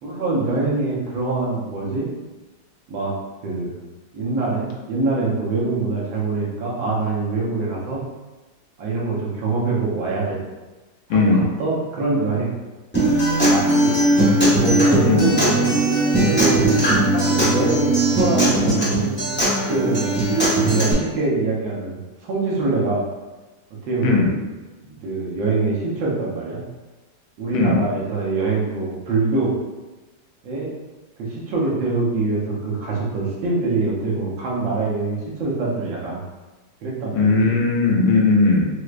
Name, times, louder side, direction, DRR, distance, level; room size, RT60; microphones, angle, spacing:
voice 1, 0.0-2.1 2.9-3.1 3.4-3.7 4.1-8.0 8.8-10.4 11.1-12.5 13.4-14.0 14.3-16.0 16.2-16.6 17.1-19.1 19.7-20.2 20.6-23.0 23.8-24.4 24.8-26.6 27.4-29.6 30.4-30.8 31.2-36.2 36.8-37.6, right 3 dB, 75° right, -5 dB, 1.6 m, -24 dB
voice 2, 11.1-11.4 15.0-15.3 24.0-24.3 27.5-27.8 37.1-38.7, left 3 dB, 90° left, 0 dB, 1.4 m, -17 dB
Acoustic guitar, 12.9-20.9, right 1 dB, 10° left, 0.7 m, -19 dB
4.7 x 2.1 x 2.4 m, 1.2 s
omnidirectional pair, 2.1 m